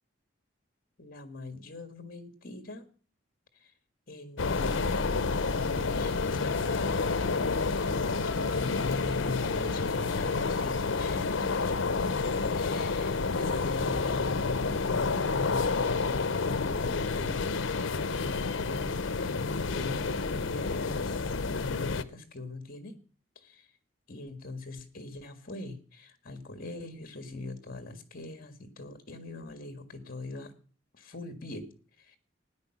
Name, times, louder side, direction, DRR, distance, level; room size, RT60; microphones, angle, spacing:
voice 1, 1.0-2.9 3.6-3.7 4.1-5.2 5.9-7.4 7.7-23.0 23.4-23.7 24.1-30.5 30.9-31.7 32.0-32.2, left 2 dB, 50° left, 1.7 m, -42 dB
sound 1, 4.4-22.0, left 4 dB, 75° left, 0.7 m, -29 dB
sound 2, 5.4-11.6, left 1 dB, 15° left, 7.1 m, -50 dB
13.5 x 9.7 x 6.0 m
head